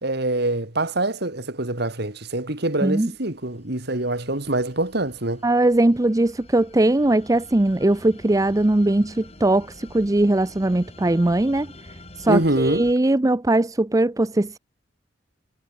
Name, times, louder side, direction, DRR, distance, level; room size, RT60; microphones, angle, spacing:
voice 1, 0.0-5.4 12.3-12.8, right 2 dB, 60° right, 3.3 m, -25 dB
voice 2, 2.8-3.1 5.4-11.7 12.2-14.6, right 1 dB, 20° right, 0.5 m, -20 dB
sound 1, 3.0-12.9, left 2 dB, 35° left, 5.8 m, -46 dB
head